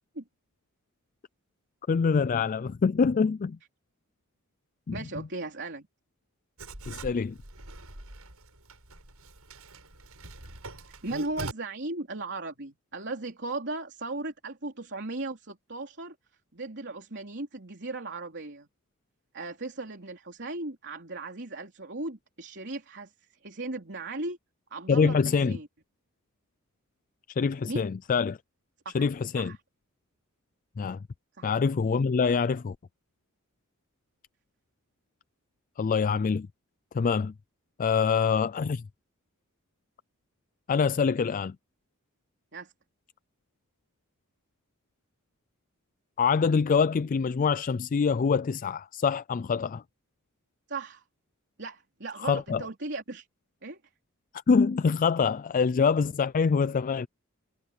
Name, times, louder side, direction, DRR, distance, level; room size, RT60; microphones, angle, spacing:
voice 1, 1.9-3.6 4.9-5.3 6.9-7.4 24.9-25.6 27.4-28.4 28.9-29.5 30.8-31.0 31.4-32.8 35.8-36.5 36.9-37.3 37.8-38.8 40.7-41.6 46.2-49.8 52.2-52.6 54.5-57.1, left 5 dB, 40° left, 0.3 m, -25 dB
voice 2, 4.9-5.9 11.0-16.2 16.5-18.7 19.3-23.1 23.4-24.4 24.7-25.7 27.7-27.9 28.9-29.1 29.4-29.6 31.4-31.5 42.5-42.7 50.7-51.0 51.6-53.3 53.6-53.8, right 2 dB, 55° right, 3.7 m, -37 dB
Writing, 6.6-11.5, right 2 dB, 85° right, 7.6 m, -43 dB
head